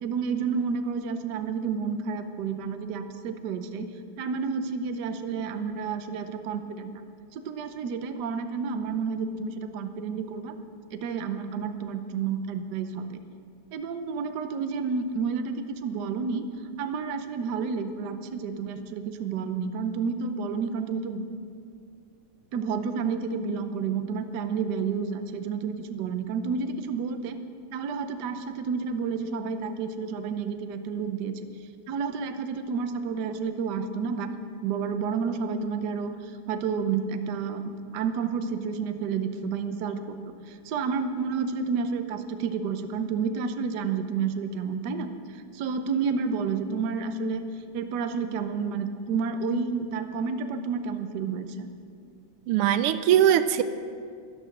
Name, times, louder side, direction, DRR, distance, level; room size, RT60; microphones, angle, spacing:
voice 1, 0.0-7.0 7.3-10.5 10.9-13.2 13.7-16.4 16.8-21.2 22.5-27.4 27.7-31.3 31.9-34.3 34.6-47.4 47.7-51.7, right 5 dB, 60° right, 8 dB, 1.2 m, -30 dB
voice 2, 52.5-53.6, right 10 dB, 85° right, 11 dB, 1.5 m, -21 dB
13.0 x 12.0 x 6.4 m, 2.3 s
omnidirectional pair, 2.4 m